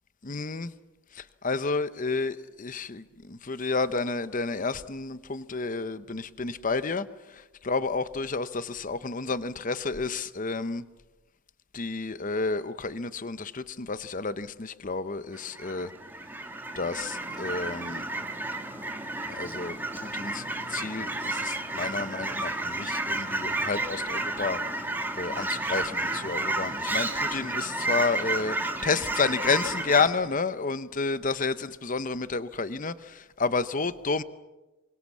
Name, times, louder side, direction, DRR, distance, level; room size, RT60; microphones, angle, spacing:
voice 1, 0.2-0.7 1.1-10.8 11.7-15.9 16.8-18.0 19.3-20.4 20.7-24.6 25.1-34.2, left 4 dB, 40° left, 13 dB, 0.8 m, -30 dB
Fowl / Chirp tweet, 15.3-30.1, right 2 dB, 10° right, 2.1 m, -31 dB
27.5 x 24.5 x 7.3 m, 1.1 s
head